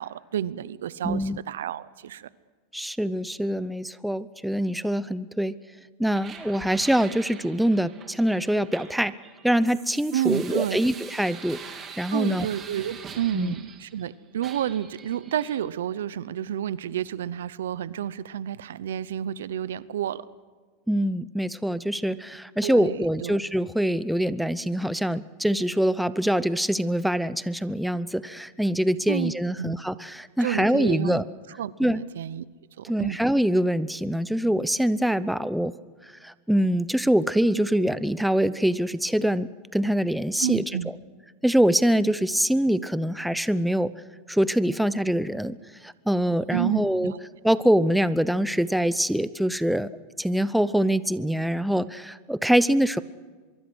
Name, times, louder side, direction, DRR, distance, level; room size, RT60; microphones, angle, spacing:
voice 1, 0.0-2.3 10.1-10.8 12.1-20.2 22.6-23.4 29.1-29.8 30.4-31.2 31.6-32.4 32.8-33.2 40.4-40.9 46.5-47.2, right 10 dB, 90° right, 18 dB, 0.8 m, -30 dB
voice 2, 1.0-1.4 2.7-5.6 6.0-9.1 9.4-12.5 13.3-13.5 20.9-31.2 31.8-32.0 32.9-35.7 36.2-40.6 41.4-43.9 44.3-45.6 45.8-47.1 47.4-49.9 50.2-53.0, equal, ahead, 15 dB, 0.7 m, -24 dB
sound 1, 6.1-14.1 14.4-15.6, right 6 dB, 25° right, 3.0 m, -44 dB
24.0 x 23.0 x 6.3 m, 1.4 s
supercardioid pair, 135°, 0 cm